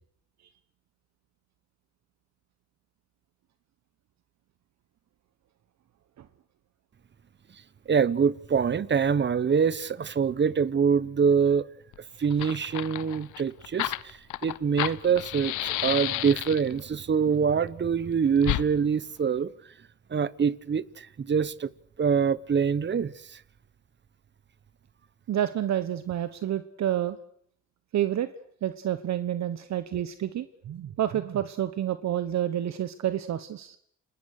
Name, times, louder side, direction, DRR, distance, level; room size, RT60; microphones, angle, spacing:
voice 1, 7.9-11.7 12.2-19.5 20.1-21.7 22.0-23.4, right 6 dB, 35° right, 1.0 m, -25 dB
Fire, 11.9-12.0 12.2-16.8 18.4-18.6, left 16 dB, 90° left, 0.9 m, -31 dB
voice 2, 25.3-27.2 27.9-28.3 28.6-33.8, right 11 dB, 65° right, 1.2 m, -29 dB
30.0 x 20.0 x 6.5 m
cardioid pair, 90°, 30 cm